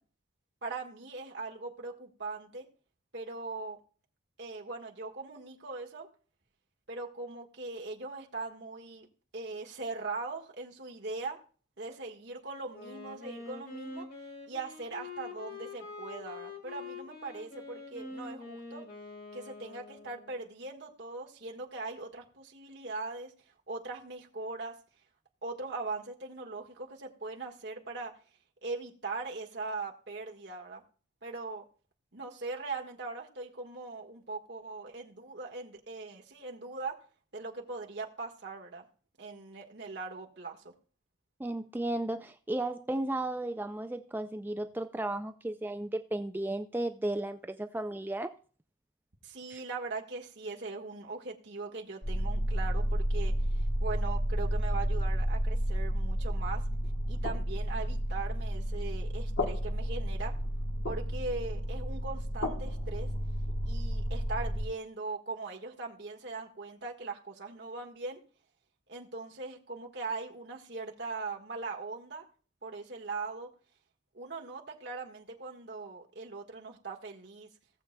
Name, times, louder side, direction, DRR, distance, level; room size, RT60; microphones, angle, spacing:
voice 1, 0.6-2.7 3.1-3.8 4.4-6.1 6.9-9.1 9.3-11.4 11.8-14.1 14.5-18.8 19.3-23.3 23.7-24.8 25.4-28.1 28.6-30.8 31.2-31.6 32.1-37.0 37.3-38.8 39.2-40.7 49.2-56.6 57.1-60.3 60.8-63.1 63.7-68.2 68.9-72.2 72.6-73.5 74.1-77.5, right 3 dB, 60° right, 0 dB, 1.4 m, -40 dB
Wind instrument woodwind instrument, 12.7-20.5, left 3 dB, 45° left, 2.3 m, -45 dB
voice 2, 41.4-48.3 49.5-49.6, right 1 dB, 10° right, 8 dB, 0.3 m, -34 dB
sound 1, 52.0-64.7, equal, 85° left, 1.3 m, -31 dB
17.5 x 7.3 x 2.2 m, 0.41 s
head